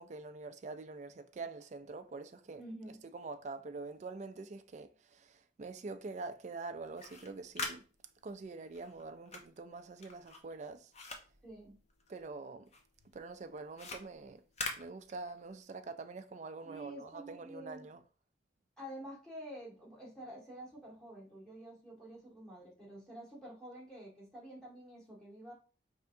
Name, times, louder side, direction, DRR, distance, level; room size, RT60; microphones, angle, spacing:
voice 1, 0.0-2.6 3.1-7.9 8.2-10.9 12.1-12.7 13.1-14.4 14.8-18.0, right 3 dB, 40° right, 0.4 m, -45 dB
voice 2, 2.6-3.0 11.4-11.8 16.6-17.8 18.8-25.5, right 1 dB, 5° left, 1.6 m, -49 dB
sound 1, 6.8-12.4 12.7-15.6, left 3 dB, 40° left, 0.7 m, -45 dB
4.6 x 3.4 x 2.6 m
head